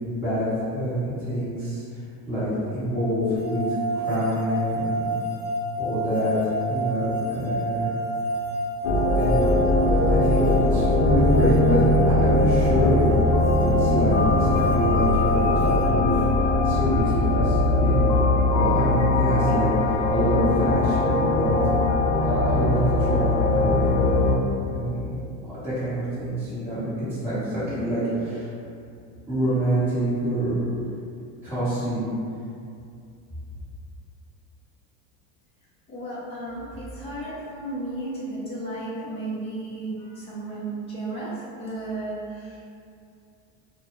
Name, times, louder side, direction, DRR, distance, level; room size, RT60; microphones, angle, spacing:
voice 1, 0.1-0.5 0.7-1.8 2.3-3.6 3.9-5.1 5.8-6.4 6.7-7.9 9.2-9.5 9.8-13.0 13.6-16.2 16.6-18.0 18.5-21.6 22.2-24.2 24.7-25.2 25.6-28.5 29.3-30.6 31.4-32.1, equal, 5° right, -16 dB, 1.1 m, -26 dB
sound 1, 3.3-15.8, right 1 dB, 75° right, 0.7 m, -29 dB
sound 2, 8.8-24.3, left 2 dB, 70° left, 0.6 m, -21 dB
voice 2, 35.9-42.7, right 2 dB, 15° left, -8 dB, 0.5 m, -34 dB
2.3 x 2.1 x 3.0 m, 2.4 s
supercardioid pair, 125°, 39 cm